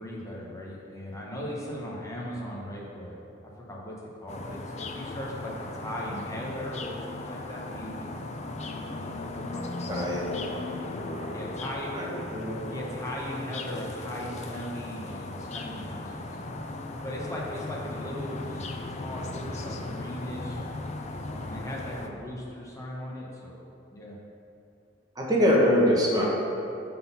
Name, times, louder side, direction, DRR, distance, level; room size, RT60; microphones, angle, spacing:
voice 1, 0.0-3.2 3.4-8.3 8.9-10.0 11.3-11.9 12.7-16.4 16.9-18.6 18.9-20.6 21.2-23.6 23.9-24.2, equal, 15° left, -3 dB, 0.9 m, -38 dB
sound 1, 4.3-22.1, left 2 dB, 35° left, 0.4 m, -37 dB
voice 2, 9.9-10.6 11.0-11.3 11.9-12.7 25.2-26.2, equal, 20° right, -4 dB, 1.0 m, -25 dB
5.9 x 3.8 x 5.6 m, 2.7 s
head